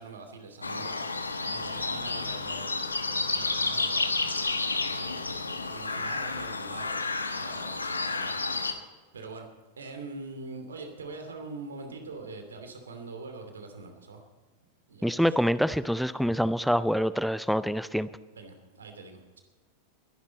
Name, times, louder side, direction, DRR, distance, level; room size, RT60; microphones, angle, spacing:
voice 1, 0.0-5.3 5.7-7.0 7.3-8.8 9.1-9.5 9.8-14.2 14.9-15.4 18.3-19.4, right 3 dB, 70° right, 6 dB, 2.7 m, -44 dB
sound 1, 0.6-8.7, left 3 dB, 80° left, 1.2 m, -31 dB
voice 2, 15.0-18.1, equal, ahead, 16 dB, 0.5 m, -26 dB
21.0 x 11.5 x 4.2 m, 1.3 s
figure-of-eight pair, 90°, 0 cm